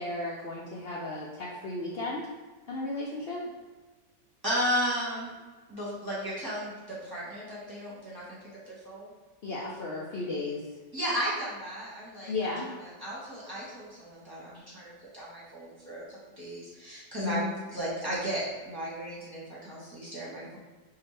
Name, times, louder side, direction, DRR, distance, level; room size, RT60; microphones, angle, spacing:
voice 1, 0.0-2.3 2.7-3.4 9.4-10.6 12.3-12.7 17.2-17.5, left 3 dB, 80° left, -5 dB, 0.5 m, -34 dB
voice 2, 4.4-5.3 5.7-8.4 8.7-9.1 10.9-12.3 13.0-17.4 17.7-20.6, equal, 15° right, -8 dB, 1.1 m, -34 dB
5.5 x 2.8 x 3.2 m, 1.3 s
omnidirectional pair, 1.8 m